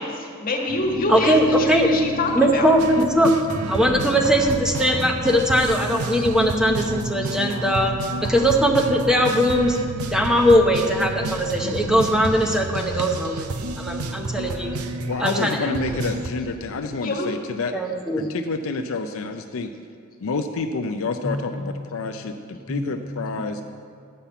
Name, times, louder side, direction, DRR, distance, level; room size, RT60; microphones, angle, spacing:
voice 1, 0.0-2.7 17.0-17.3, left 1 dB, 40° left, 1 dB, 1.4 m, -25 dB
sound 1, 0.7-12.5, left 1 dB, 55° right, 1.3 m, -36 dB
voice 2, 1.1-1.9 2.3-3.4 3.7-7.9 8.2-9.8 10.1-13.5 13.8-14.7 15.2-15.7 17.7-18.3 21.2-22.0 22.7-23.1 23.4-23.5, equal, 5° right, 2 dB, 0.8 m, -20 dB
sound 2, 2.8-16.3, right 2 dB, 80° right, 0.7 m, -30 dB
voice 3, 15.1-17.7 18.2-19.7 20.2-23.6, left 3 dB, 65° left, 6 dB, 0.5 m, -28 dB
10.5 x 5.7 x 8.1 m, 2.2 s
head